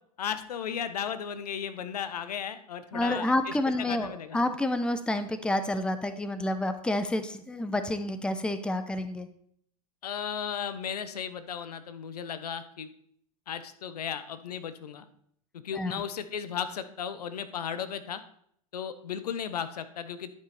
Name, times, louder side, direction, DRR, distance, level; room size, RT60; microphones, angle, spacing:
voice 1, 0.2-3.6 3.9-4.4 10.0-12.9 13.5-15.1 15.6-18.2 18.7-20.3, left 8 dB, 80° left, 12 dB, 0.9 m, -35 dB
voice 2, 2.9-9.3 15.7-15.9, left 1 dB, 5° left, 10 dB, 0.7 m, -29 dB
11.0 x 5.5 x 4.2 m, 0.67 s
hypercardioid pair, 100°, 20 cm